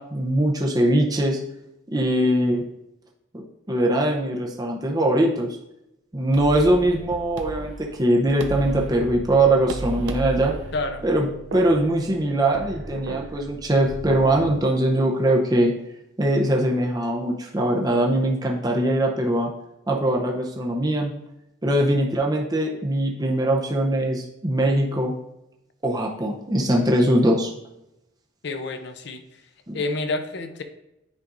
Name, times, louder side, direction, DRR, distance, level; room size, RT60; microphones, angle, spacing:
voice 1, 0.0-1.4 1.9-2.6 3.3-5.5 6.1-10.5 11.0-15.7 16.2-19.5 19.9-21.1 21.6-25.1 25.8-27.5 29.7-29.8, right 1 dB, 20° right, -1 dB, 0.6 m, -21 dB
sound 1, 6.3-14.6, right 2 dB, 65° right, 0.5 m, -35 dB
voice 2, 10.7-11.0 28.4-29.2 29.7-30.6, left 3 dB, 55° left, 8 dB, 0.6 m, -28 dB
9.6 x 5.1 x 2.5 m, 0.88 s
head